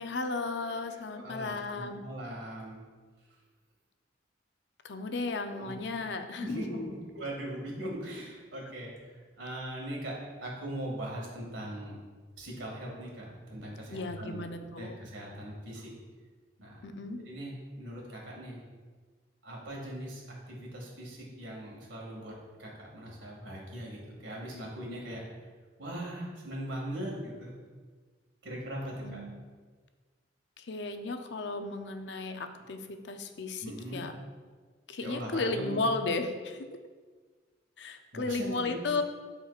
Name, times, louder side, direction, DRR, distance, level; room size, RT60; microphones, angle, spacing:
voice 1, 0.0-2.0 4.8-6.9 13.9-15.0 16.8-17.2 29.0-29.3 30.6-33.6 33.9-34.2 34.9-36.7 37.8-39.0, left 3 dB, 65° left, 7 dB, 0.5 m, -34 dB
voice 2, 1.1-2.8 5.5-5.8 6.4-6.8 7.1-11.9 12.4-14.4 14.8-15.9 16.6-16.8 17.3-18.6 19.4-25.2 25.8-27.5 28.4-29.2 33.6-34.0 35.0-35.7 38.1-39.0, right 1 dB, 80° right, -2 dB, 2.1 m, -40 dB
12.5 x 4.4 x 2.4 m, 1.5 s
head